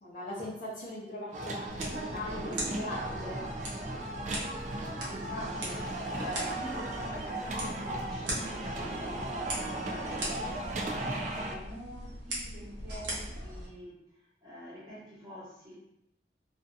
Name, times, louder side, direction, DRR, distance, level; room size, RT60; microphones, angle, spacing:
voice 1, 0.0-3.4, left 1 dB, 50° left, -10 dB, 0.7 m, -40 dB
sound 1, 1.3-11.6, right 1 dB, 40° right, 0.3 m, -36 dB
sound 2, 1.7-13.7, right 1 dB, 80° right, 0.8 m, -41 dB
voice 2, 1.8-2.7 3.0-3.4 5.0-10.4 10.9-14.0 14.4-15.7, equal, 20° right, -10 dB, 1.1 m, -45 dB
2.6 x 2.5 x 2.3 m, 0.81 s
head